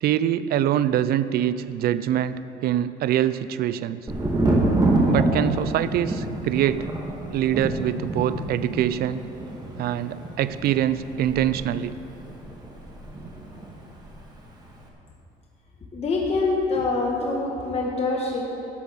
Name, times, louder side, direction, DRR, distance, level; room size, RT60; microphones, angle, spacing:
voice 1, 0.0-2.3 2.6-4.0 5.1-6.9 7.3-9.2 9.8-11.9, right 11 dB, 65° right, 15 dB, 0.5 m, -24 dB
Thunder, 4.1-13.7 14.0-14.7, right 2 dB, 25° right, 2.0 m, -27 dB
voice 2, 15.9-18.4, left 3 dB, 35° left, -2 dB, 1.6 m, -25 dB
13.5 x 7.9 x 6.3 m, 3.0 s
cardioid pair, 110°, 17 cm